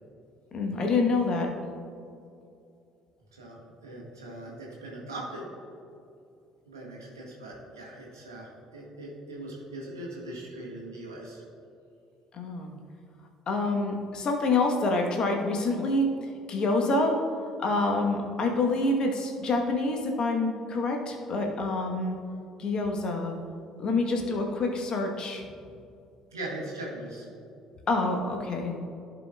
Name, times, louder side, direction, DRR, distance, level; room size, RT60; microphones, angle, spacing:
voice 1, 0.5-1.5 12.3-12.7 13.5-16.1 16.5-17.2 17.6-22.2 22.6-23.4 23.8-25.4 27.9-28.7, left 2 dB, 40° left, 2 dB, 1.2 m, -27 dB
voice 2, 3.3-5.5 6.6-11.4 26.3-27.3, right 1 dB, 80° right, -4 dB, 1.7 m, -40 dB
15.0 x 5.1 x 2.4 m, 2.5 s
figure-of-eight pair, 50°, 2 cm